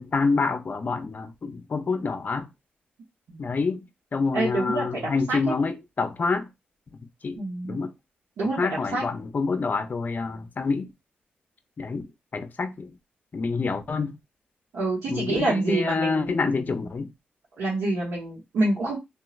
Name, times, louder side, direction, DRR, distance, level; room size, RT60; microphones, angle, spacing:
voice 1, 0.0-2.5 3.4-6.5 7.2-7.9 8.6-10.9 11.8-12.9 13.3-14.2 15.1-17.1, left 4 dB, 45° left, 0.5 m, -27 dB
voice 2, 4.3-5.6 7.4-7.8 8.4-9.0 14.7-16.9 17.6-19.0, right 2 dB, 85° right, 1.0 m, -27 dB
3.0 x 2.3 x 2.4 m
cardioid pair, 60°, 4 cm